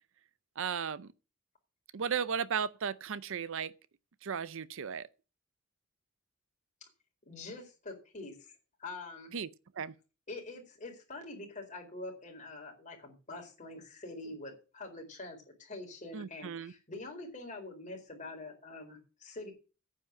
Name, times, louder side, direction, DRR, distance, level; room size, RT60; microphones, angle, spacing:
voice 1, 0.6-1.1 1.9-3.7 4.2-5.1 9.3-9.5 9.8-9.9 16.1-16.7, right 7 dB, 60° right, 0.5 m, -35 dB
voice 2, 7.3-8.3 8.8-9.3 10.3-19.5, left 2 dB, 35° left, 4.4 m, -45 dB
9.5 x 8.6 x 6.4 m
head